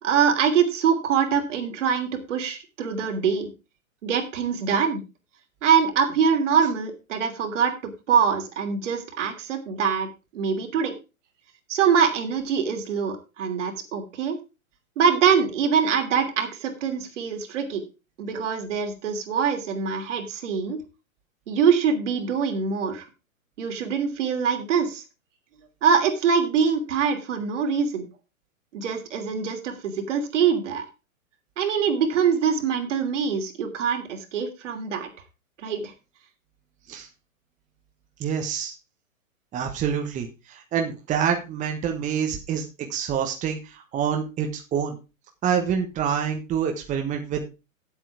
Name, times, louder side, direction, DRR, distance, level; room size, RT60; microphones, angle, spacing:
voice 1, 0.0-3.5 4.0-5.0 5.6-7.7 8.1-10.1 10.3-10.9 11.7-14.4 15.0-17.8 18.2-20.8 21.5-23.1 23.6-25.0 25.8-28.1 28.7-30.9 31.6-35.1 35.6-35.9, right 6 dB, 60° right, 5 dB, 3.0 m, -24 dB
voice 2, 38.2-38.7 39.5-45.0 45.4-47.4, right 7 dB, 20° right, 3 dB, 1.3 m, -27 dB
9.2 x 8.2 x 4.8 m, 0.29 s
hypercardioid pair, 130°, 41 cm